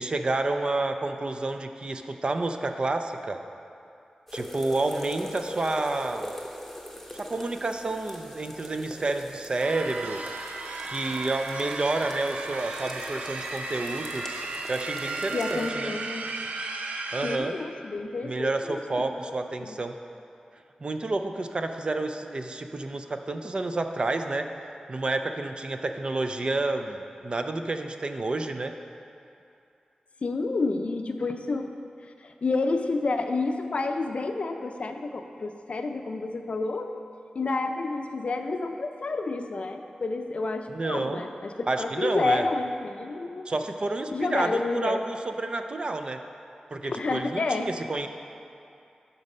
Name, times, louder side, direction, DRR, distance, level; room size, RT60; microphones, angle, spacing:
voice 1, 0.0-3.4 4.3-6.3 7.1-10.2 10.8-14.2 14.7-15.9 17.1-17.5 18.2-19.9 20.8-24.5 24.9-27.0 27.2-28.7 40.7-41.2 41.7-42.5 43.5-46.2 46.7-48.1, right 2 dB, 40° right, 6 dB, 0.4 m, -29 dB
sound 1, 4.3-15.7, left 1 dB, 5° left, 0.9 m, -42 dB
sound 2, 9.6-17.4, right 3 dB, 85° right, 0.6 m, -35 dB
voice 2, 15.3-16.3 17.2-18.8 19.3-19.8 30.2-31.7 32.2-36.9 37.3-43.5 44.1-45.0 46.8-47.7, left 3 dB, 55° left, 6 dB, 0.5 m, -29 dB
11.5 x 4.0 x 5.4 m, 2.6 s
wide cardioid pair, 115°, 2 cm